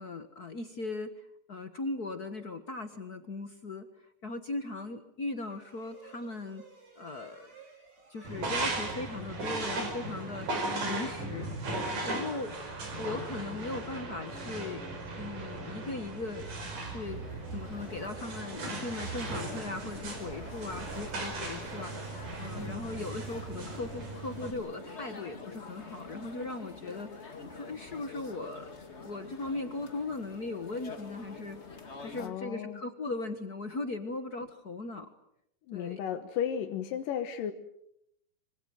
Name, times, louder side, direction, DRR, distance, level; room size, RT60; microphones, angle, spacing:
voice 1, 0.0-3.9 4.2-6.6 7.0-7.5 8.1-11.5 12.0-12.5 13.0-14.8 15.1-16.4 16.8-17.2 17.5-28.7 29.0-31.6 32.0-35.1 35.7-36.0, left 3 dB, 50° left, 8 dB, 1.2 m, -38 dB
sound 1, 5.4-14.2, right 5 dB, 40° right, 6.5 m, -56 dB
sound 2, 8.2-24.5, right 2 dB, 75° right, 6.6 m, -37 dB
sound 3, 16.2-32.3, left 4 dB, 25° left, 1.8 m, -47 dB
voice 2, 32.2-32.8 35.7-37.5, left 9 dB, 85° left, 7 dB, 2.9 m, -34 dB
25.5 x 25.0 x 7.8 m, 0.77 s
omnidirectional pair, 3.8 m